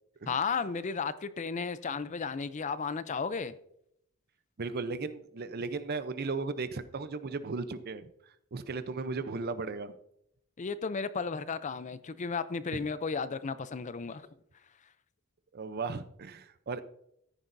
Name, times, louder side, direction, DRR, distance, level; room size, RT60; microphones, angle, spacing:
voice 1, 0.3-3.5 10.6-14.2, left 5 dB, 35° left, 14 dB, 0.4 m, -34 dB
voice 2, 4.6-8.1 8.5-9.9 12.7-12.8 15.5-16.8, right 4 dB, 45° right, 13 dB, 0.6 m, -36 dB
14.0 x 9.6 x 2.6 m, 0.76 s
head